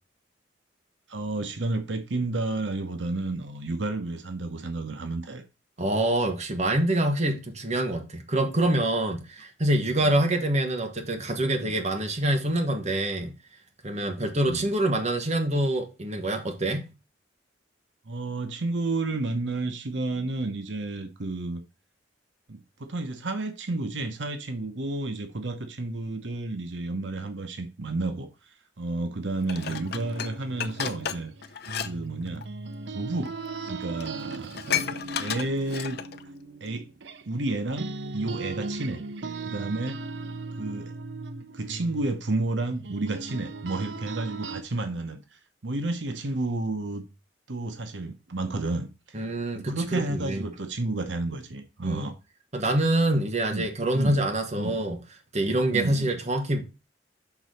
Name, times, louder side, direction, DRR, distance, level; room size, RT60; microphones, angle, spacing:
voice 1, 1.1-5.4 10.0-10.2 11.6-11.8 13.9-14.7 18.1-21.6 22.5-28.3 28.8-31.3 31.8-32.4 32.9-33.4 33.7-36.0 36.6-36.9 37.3-39.0 39.5-40.0 40.6-40.9 41.5-47.1 47.5-49.2 49.5-52.1 53.5-53.7 53.9-54.2 54.6-54.8 55.7-56.1, right 2 dB, 90° right, 1.0 m, -31 dB
voice 2, 5.8-13.3 13.8-16.9 49.1-50.4 51.8-52.0 52.5-55.0 55.3-56.6, right 1 dB, 40° right, 1.6 m, -26 dB
Dishes pots and pans, 29.5-31.9 32.2-32.4 33.3-33.4 33.7-33.8 34.0-36.2 36.7-36.8, left 9 dB, 60° left, 0.6 m, -33 dB
sound 1, 29.7-37.5 37.8-44.6, right 3 dB, 70° right, 0.7 m, -38 dB
6.2 x 4.1 x 6.4 m
head